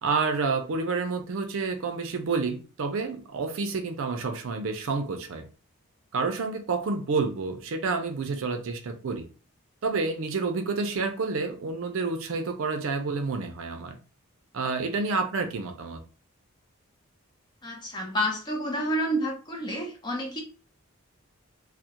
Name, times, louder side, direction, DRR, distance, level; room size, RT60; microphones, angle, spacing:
voice 1, 0.0-5.4 6.1-9.3 9.8-13.9 14.5-16.0, right 4 dB, 65° right, 6 dB, 0.5 m, -29 dB
voice 2, 17.6-20.4, equal, 20° left, 1 dB, 0.5 m, -29 dB
2.3 x 2.0 x 2.8 m, 0.36 s
head